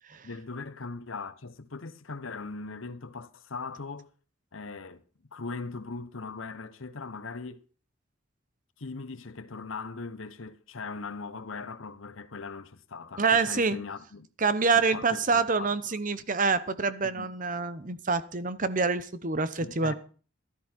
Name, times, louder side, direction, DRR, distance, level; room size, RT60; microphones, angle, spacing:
voice 1, 0.2-4.1 4.5-5.0 5.3-7.7 8.8-14.3 14.7-15.8 17.0-17.3 19.6-19.9, left 4 dB, 85° left, 1.0 m, -40 dB
voice 2, 13.2-13.8 14.4-19.9, right 4 dB, 40° right, 0.9 m, -26 dB
14.5 x 12.5 x 4.5 m
head